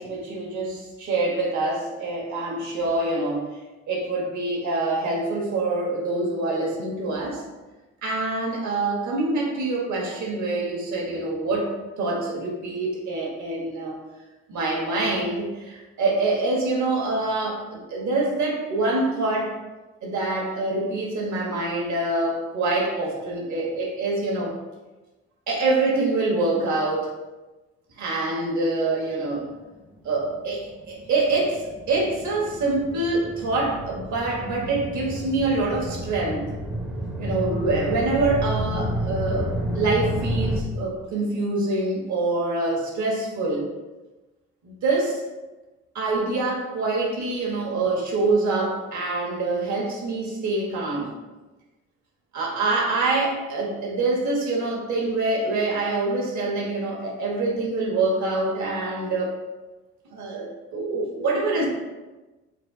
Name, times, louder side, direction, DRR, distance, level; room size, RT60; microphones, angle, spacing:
voice 1, 0.0-3.5 3.9-7.4 8.0-11.7 12.0-14.0 14.5-19.5 20.0-24.5 25.5-27.1 28.0-29.5 30.0-36.5 37.2-43.7 44.6-45.2 45.9-51.1 52.3-59.3 60.1-61.7, right 2 dB, 70° right, -2 dB, 1.2 m, -25 dB
sound 1, 30.3-40.6, equal, 5° right, 0.4 m, -31 dB
4.0 x 2.3 x 3.6 m, 1.2 s
cardioid pair, 90°, 30 cm